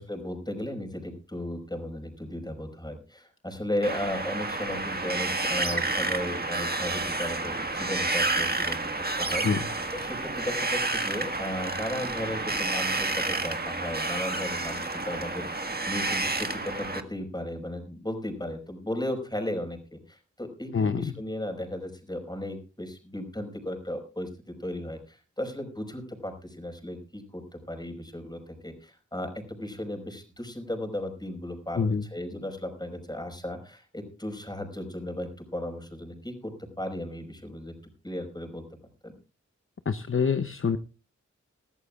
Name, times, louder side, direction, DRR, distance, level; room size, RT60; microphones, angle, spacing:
voice 1, 0.0-8.9 9.2-37.7 38.0-38.6 39.0-39.1, left 1 dB, 15° left, 5 dB, 4.8 m, -35 dB
Wind, 3.8-17.0, right 2 dB, 30° right, 1.5 m, -30 dB
voice 2, 20.7-21.1 31.8-32.0 39.9-40.8, left 5 dB, 45° left, 11 dB, 0.7 m, -26 dB
21.5 x 13.5 x 2.4 m, 0.31 s
wide cardioid pair, 50°, 30 cm